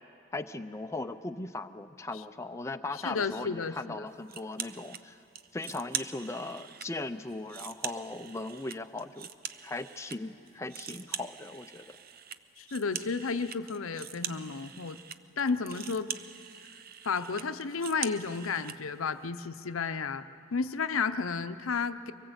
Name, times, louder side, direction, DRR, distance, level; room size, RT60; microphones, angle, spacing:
voice 1, 0.3-5.2 5.5-9.3 9.6-11.9, left 2 dB, 15° left, 7 dB, 0.5 m, -38 dB
voice 2, 3.0-4.1 12.6-15.0 15.4-16.1 17.0-20.2 20.5-22.1, left 5 dB, 85° left, 10 dB, 0.7 m, -32 dB
sound 1, 4.3-5.0 5.3-6.9 7.3-10.2 10.5-18.8, right 9 dB, 45° right, 0.6 m, -42 dB
23.5 x 18.5 x 8.1 m, 2.6 s
head